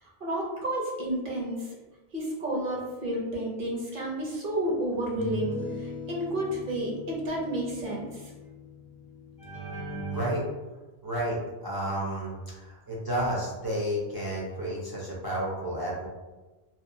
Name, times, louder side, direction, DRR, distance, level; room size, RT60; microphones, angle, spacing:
voice 1, 0.0-1.8 2.1-8.3, right 1 dB, 60° right, -3 dB, 0.8 m, -31 dB
sound 1, 3.8-3.9 4.9-10.2, left 1 dB, 50° left, 0.6 m, -41 dB
voice 2, 9.4-10.5 11.0-16.1, right 1 dB, 30° right, -6 dB, 0.4 m, -31 dB
2.7 x 2.1 x 2.6 m, 1.2 s
omnidirectional pair, 1.0 m